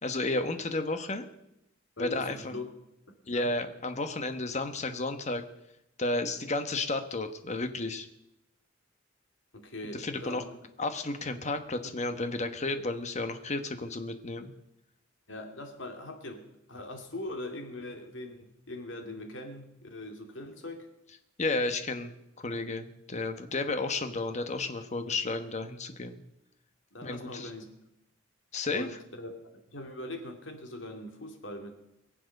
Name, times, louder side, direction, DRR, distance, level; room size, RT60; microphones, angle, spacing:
voice 1, 0.0-1.2 2.0-2.5 3.3-5.4 6.0-8.1 9.9-10.4 10.8-14.5 21.4-26.2 27.0-27.5 28.5-29.0, left 2 dB, 35° left, 8 dB, 1.2 m, -32 dB
voice 2, 2.0-2.7 3.2-3.5 9.5-10.4 15.3-20.9 26.9-27.7 28.7-29.3 29.7-31.7, left 1 dB, 65° left, 4 dB, 2.4 m, -41 dB
22.5 x 7.7 x 6.6 m, 0.86 s
head